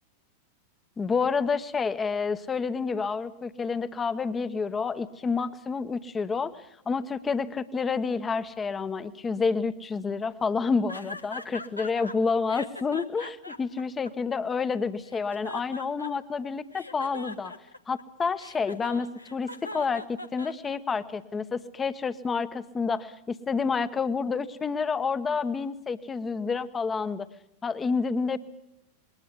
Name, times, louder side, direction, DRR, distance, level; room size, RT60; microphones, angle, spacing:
voice 1, 1.0-17.5 17.9-27.3 27.6-28.4, left 5 dB, 20° left, 13 dB, 1.0 m, -29 dB
sound 1, 10.9-12.1 12.5-14.6 15.1-16.4 16.7-21.0, left 2 dB, 85° left, 1.1 m, -40 dB
21.0 x 19.0 x 8.2 m, 0.81 s
figure-of-eight pair, 90°, 0 cm